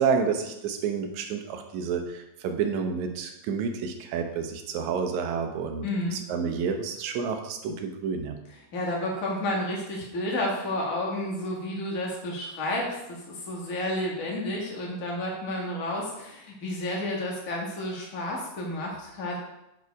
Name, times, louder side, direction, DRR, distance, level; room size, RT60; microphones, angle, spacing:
voice 1, 0.0-5.9 6.1-8.4, right 6 dB, 80° right, 4 dB, 2.2 m, -29 dB
voice 2, 5.8-6.2 8.5-19.4, left 1 dB, 35° left, -2 dB, 1.6 m, -31 dB
8.2 x 4.8 x 4.7 m, 0.89 s
omnidirectional pair, 3.4 m